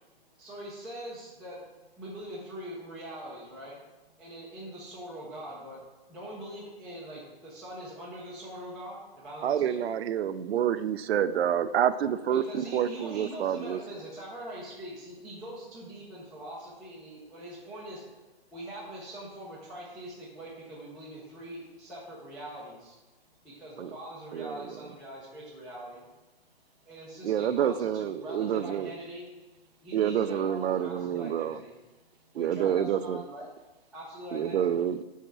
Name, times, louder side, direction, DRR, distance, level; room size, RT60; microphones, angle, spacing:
voice 1, 0.4-1.6 2.0-3.8 4.2-5.8 6.1-9.8 12.3-18.0 18.5-23.0 23.4-26.0 26.8-29.3 29.8-31.7 32.3-33.5 33.9-34.7, right 1 dB, ahead, -11 dB, 0.4 m, -42 dB
voice 2, 4.2-4.5 10.2-10.6 18.4-18.5 23.1-23.7 26.3-27.0 29.7-29.9 31.9-32.4, equal, 20° left, 0 dB, 1.0 m, -70 dB
voice 3, 9.4-13.8 23.8-23.9 24.3-24.6 27.2-28.9 29.9-31.6 32.3-33.2 34.3-35.0, right 9 dB, 85° right, 13 dB, 0.5 m, -28 dB
5.6 x 4.3 x 6.0 m, 1.1 s
hypercardioid pair, 160°, 30 cm